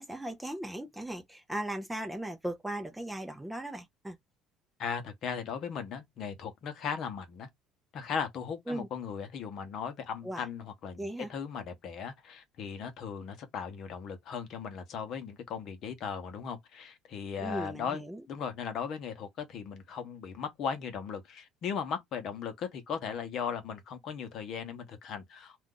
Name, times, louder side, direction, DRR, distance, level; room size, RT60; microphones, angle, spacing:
voice 1, 0.0-4.2 8.7-8.9 10.2-10.4 11.0-11.3 17.4-18.2, right 1 dB, 5° right, 0.5 m, -37 dB
voice 2, 4.8-7.5 7.9-18.0 18.3-25.6, left 6 dB, 50° left, 0.8 m, -37 dB
2.5 x 2.3 x 3.7 m
cardioid pair, 130°, 0 cm